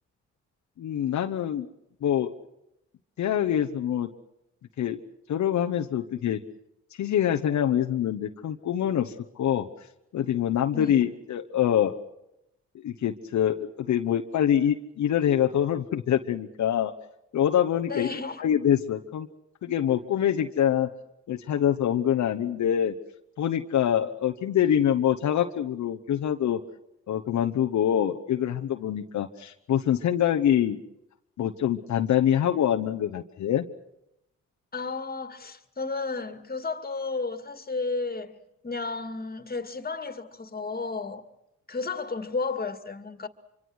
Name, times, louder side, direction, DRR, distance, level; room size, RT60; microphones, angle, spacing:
voice 1, 0.8-1.7 2.0-2.3 3.2-4.1 4.8-5.0 5.3-6.4 6.9-9.7 10.1-11.9 12.7-16.9 17.3-18.1 18.4-19.3 19.6-20.9 21.3-22.9 23.4-26.6 27.1-30.8 31.4-33.6, left 10 dB, 70° left, 1.1 m, -25 dB
voice 2, 17.9-18.4 34.7-41.2 41.7-43.3, left 3 dB, 30° left, 2.2 m, -33 dB
25.5 x 24.5 x 6.4 m
supercardioid pair, 55°, 30 cm